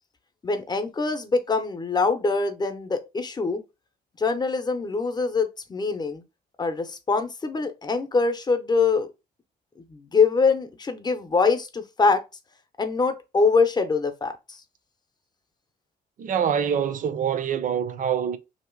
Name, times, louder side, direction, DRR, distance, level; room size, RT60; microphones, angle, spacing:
voice 1, 0.4-3.6 4.2-6.2 6.6-9.1 9.9-12.2 12.8-14.6, left 4 dB, 25° left, 0.8 m, -24 dB
voice 2, 16.2-18.4, right 8 dB, 50° right, 0.6 m, -25 dB
3.1 x 2.9 x 4.5 m
cardioid pair, 115°, 17 cm